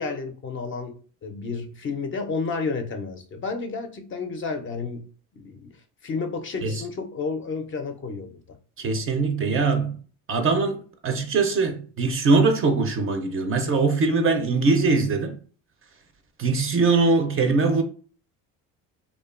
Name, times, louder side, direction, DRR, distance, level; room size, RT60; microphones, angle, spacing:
voice 1, 0.0-5.1 5.4-5.7 6.0-8.6, left 4 dB, 35° left, 0.4 m, -31 dB
voice 2, 8.8-10.0 10.3-15.4 16.4-17.8, right 3 dB, 35° right, 0.4 m, -22 dB
2.8 x 2.2 x 2.3 m
cardioid pair, 100°, 37 cm